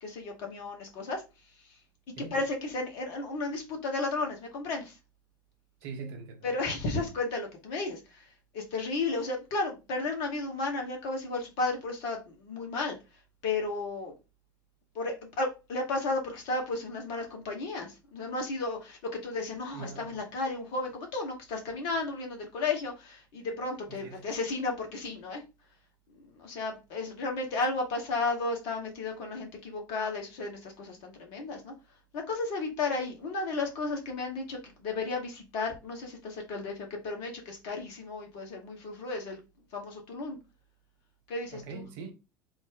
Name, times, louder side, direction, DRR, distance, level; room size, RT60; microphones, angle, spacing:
voice 1, 0.0-1.2 2.2-5.0 6.4-8.3 8.5-13.0 13.4-14.1 14.9-25.4 26.1-31.7 32.1-39.4 39.7-40.4 41.3-41.9, left 3 dB, 50° left, 1.1 m, -33 dB
voice 2, 5.8-6.5 19.7-20.2 23.9-24.3 41.5-42.1, right 5 dB, 50° right, 0.7 m, -42 dB
3.2 x 2.1 x 3.6 m
figure-of-eight pair, 70°, 11 cm